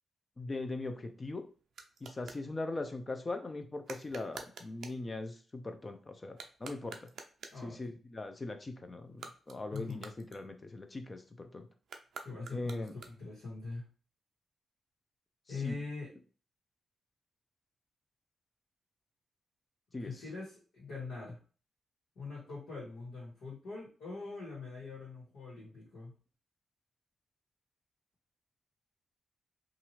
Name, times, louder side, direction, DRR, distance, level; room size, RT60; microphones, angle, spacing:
voice 1, 0.4-1.4 2.0-7.1 7.6-11.7 12.5-13.0 15.6-15.8 19.9-20.1, left 2 dB, 35° left, 6 dB, 0.6 m, -40 dB
sound 1, 0.8-2.5 3.8-5.1 6.3-7.7 9.0-10.9 11.8-13.4, right 5 dB, 70° right, 0.4 m, -50 dB
voice 2, 7.5-7.9 9.7-10.1 12.2-13.8 15.5-16.1 20.0-21.4 22.1-26.1, left 4 dB, 75° left, -6 dB, 1.5 m, -43 dB
2.7 x 2.5 x 3.1 m, 0.38 s
supercardioid pair, 45°, 0 cm